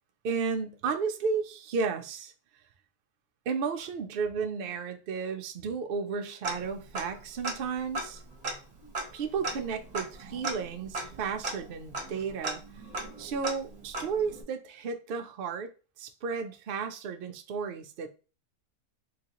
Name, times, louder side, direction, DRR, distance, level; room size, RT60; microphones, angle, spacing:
voice 1, 0.2-2.3 3.5-8.2 9.1-12.6 13.2-15.7 16.0-18.1, right 5 dB, 75° right, 0.5 m, -33 dB
Tick-tock, 6.4-7.2 7.4-7.5 7.9-14.4, right 2 dB, 35° right, 0.7 m, -37 dB
3.8 x 3.0 x 2.9 m
omnidirectional pair, 1.6 m